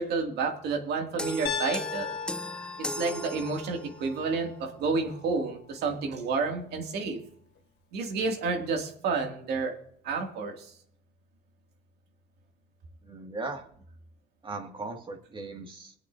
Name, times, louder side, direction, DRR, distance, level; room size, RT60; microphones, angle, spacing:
voice 1, 0.0-2.1 2.8-7.2 7.9-9.7 10.0-10.5, right 4 dB, 75° right, 3 dB, 2.4 m, -30 dB
sound 1, 1.2-4.1, left 1 dB, 5° left, 0.4 m, -37 dB
Piano, 1.5-5.5, left 7 dB, 85° left, 1.3 m, -38 dB
voice 2, 13.0-13.7 14.4-15.9, right 3 dB, 30° right, 4 dB, 2.1 m, -38 dB
22.5 x 8.2 x 2.7 m, 0.64 s
cardioid pair, 110°, 17 cm